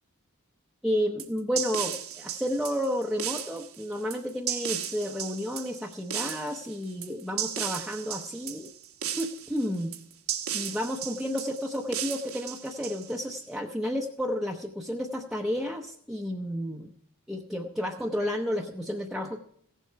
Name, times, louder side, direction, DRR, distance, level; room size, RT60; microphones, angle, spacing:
voice 1, 0.8-8.7 9.1-9.9 10.5-16.9 17.3-19.4, equal, ahead, 0 dB, 0.7 m, -31 dB
sound 1, 1.2-13.4, right 10 dB, 70° right, 1.2 m, -35 dB
16.0 x 7.3 x 5.7 m, 0.67 s
head